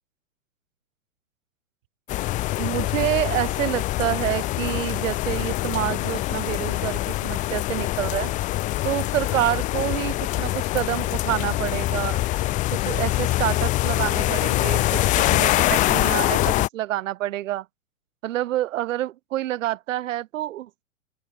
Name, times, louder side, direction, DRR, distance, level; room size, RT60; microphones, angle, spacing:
sound 1, 2.1-16.7, left 17 dB, 20° left, 0.5 m, -24 dB
voice 1, 2.6-8.3 8.8-12.2 12.7-17.7 18.2-20.8, right 14 dB, 70° right, 0.8 m, -28 dB
open air
hypercardioid pair, 125°, 41 cm